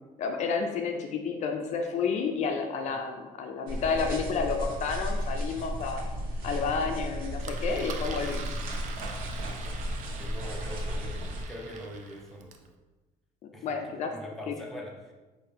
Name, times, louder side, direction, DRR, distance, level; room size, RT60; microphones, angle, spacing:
voice 1, 0.2-6.0 6.4-8.5 13.6-14.1 14.5-14.6, left 5 dB, 50° left, 4 dB, 0.4 m, -30 dB
sound 1, 3.7-11.4, equal, 75° right, 0.9 m, -34 dB
Engine, 7.4-12.7, right 5 dB, 55° right, 0.4 m, -44 dB
voice 2, 9.2-12.6 13.5-15.1, left 1 dB, ahead, -2 dB, 0.5 m, -44 dB
4.5 x 2.5 x 3.3 m, 1.2 s
cardioid pair, 150°, 15 cm